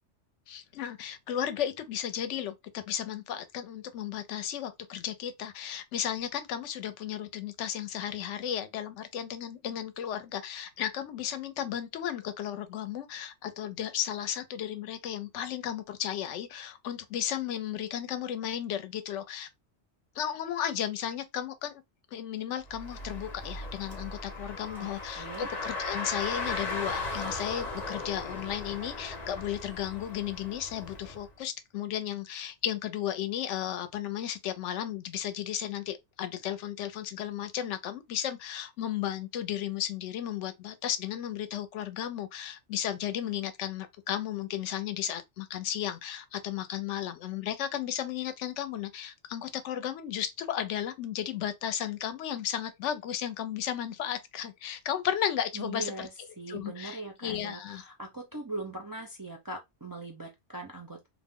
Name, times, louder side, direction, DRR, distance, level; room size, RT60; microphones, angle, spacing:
voice 1, 0.5-19.5 20.2-21.8 22.1-56.1 56.5-57.8, left 10 dB, 90° left, 0.9 m, -34 dB
Car, 22.7-31.2, left 2 dB, 40° left, 0.7 m, -37 dB
voice 2, 24.8-25.5 55.5-61.1, right 2 dB, 35° right, 0.3 m, -41 dB
2.4 x 2.0 x 3.5 m
omnidirectional pair, 1.2 m